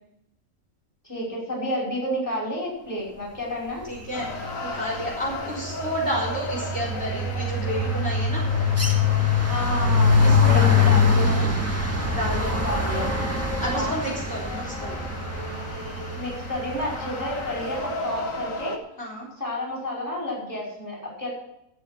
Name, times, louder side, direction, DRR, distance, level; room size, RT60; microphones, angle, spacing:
voice 1, 1.0-3.9 9.5-11.5 12.6-13.1 13.7-14.0 16.2-18.8 19.4-21.3, left 1 dB, 15° left, -4 dB, 5.6 m, -30 dB
voice 2, 3.9-8.4 10.2-10.9 12.1-12.6 13.6-15.1 19.0-19.3, equal, 50° left, -4 dB, 4.4 m, -31 dB
sound 1, 4.1-18.8, left 2 dB, 80° left, 1.9 m, -36 dB
sound 2, 4.1-4.5 4.8-17.9, left 4 dB, 10° right, 1.8 m, -23 dB
14.5 x 8.3 x 6.1 m, 0.80 s
omnidirectional pair, 1.4 m